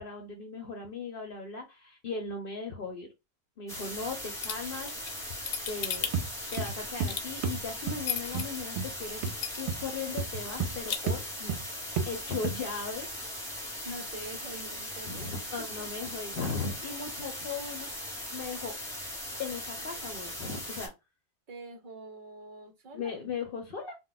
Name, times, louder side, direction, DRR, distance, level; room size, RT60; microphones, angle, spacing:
voice 1, 0.0-3.1 3.6-5.2 5.7-6.1 6.5-9.2 9.5-11.6 11.8-13.1 15.0-17.9 18.3-18.7 19.4-20.9 22.9-23.9, left 4 dB, 60° left, 0.8 m, -37 dB
sound 1, 3.7-20.9, left 1 dB, 5° left, 1.0 m, -39 dB
sound 2, 4.4-8.4 8.9-9.0 9.3-9.9 10.2-10.3 10.6-11.0, left 8 dB, 90° left, 0.9 m, -34 dB
sound 3, 6.1-6.3 6.6-7.1 7.4-7.6 7.9-8.0 8.3-8.5 8.8-8.9 9.2-9.4 9.7-9.8 10.2-10.8 11.1-11.2 11.5-11.7 12.0-12.1 12.4-12.6, right 5 dB, 85° right, 0.9 m, -31 dB
voice 2, 13.8-15.4 15.8-15.9 21.5-23.2, right 1 dB, 55° right, 0.8 m, -45 dB
2.2 x 2.1 x 3.8 m
omnidirectional pair, 1.1 m